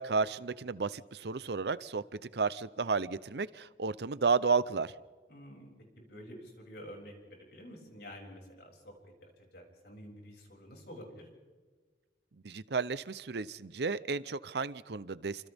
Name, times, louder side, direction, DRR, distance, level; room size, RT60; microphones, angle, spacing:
voice 1, 0.0-4.9 12.4-15.5, right 4 dB, 65° right, 16 dB, 0.7 m, -32 dB
voice 2, 5.3-5.7 5.9-11.3, equal, 65° left, 0 dB, 6.8 m, -49 dB
29.0 x 26.5 x 3.6 m, 1.4 s
head